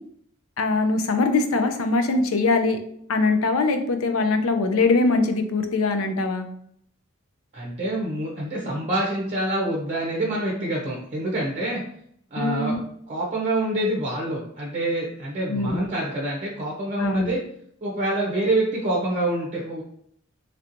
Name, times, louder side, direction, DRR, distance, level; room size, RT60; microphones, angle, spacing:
voice 1, 0.6-2.8 3.1-6.5 12.4-12.8 15.5-15.9 17.0-17.3, left 3 dB, 85° left, 7 dB, 0.5 m, -22 dB
voice 2, 7.5-11.8 12.3-12.8 13.1-17.4 17.8-19.8, right 1 dB, 35° right, -3 dB, 0.6 m, -26 dB
3.2 x 2.9 x 2.5 m, 0.68 s
head